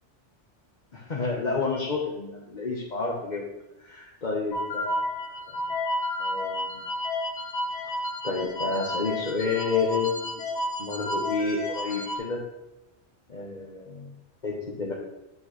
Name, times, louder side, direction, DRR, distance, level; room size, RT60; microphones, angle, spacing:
voice 1, 0.9-3.5 3.8-5.1 6.2-6.8 8.2-10.4 10.8-12.4 13.3-14.1 14.4-14.9, left 4 dB, 40° left, -4 dB, 1.2 m, -30 dB
sound 1, 4.5-12.2, left 1 dB, 70° left, 1.3 m, -31 dB
9.3 x 6.0 x 3.2 m, 0.94 s
omnidirectional pair, 1.2 m